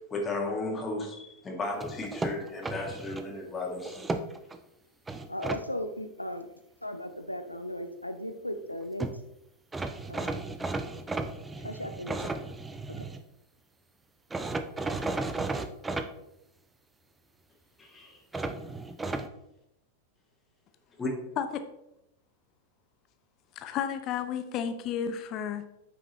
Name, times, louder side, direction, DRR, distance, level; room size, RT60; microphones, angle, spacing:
voice 1, 0.1-4.1 17.8-18.2 21.0-21.3, left 2 dB, 15° left, -1 dB, 1.9 m, -34 dB
sound 1, 1.8-3.2 3.8-4.6 5.1-5.6 8.7-8.8 9.0-9.2 9.7-13.2 14.3-16.1 18.3-19.3, right 3 dB, 10° right, 0.6 m, -34 dB
voice 2, 5.3-6.5 6.8-9.2 10.1-10.5 11.6-12.3, left 1 dB, 85° left, 8 dB, 0.7 m, -37 dB
voice 3, 23.6-25.7, left 8 dB, 35° left, 9 dB, 0.7 m, -32 dB
9.2 x 5.9 x 3.1 m, 0.83 s
figure-of-eight pair, 90°, 0 cm